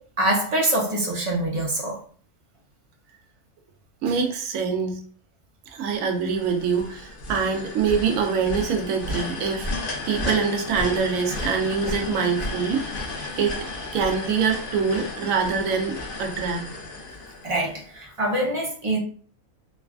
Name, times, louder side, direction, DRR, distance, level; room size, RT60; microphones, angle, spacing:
voice 1, 0.2-2.0 17.4-19.0, right 1 dB, 35° right, 0.5 m, -24 dB
voice 2, 4.0-5.0 5.7-9.7 10.1-12.9 13.4-13.6 13.9-16.6, right 5 dB, 75° right, 1.0 m, -24 dB
sound 1, 5.9-18.0, left 2 dB, 50° left, 0.7 m, -33 dB
3.1 x 2.3 x 2.3 m
omnidirectional pair, 1.4 m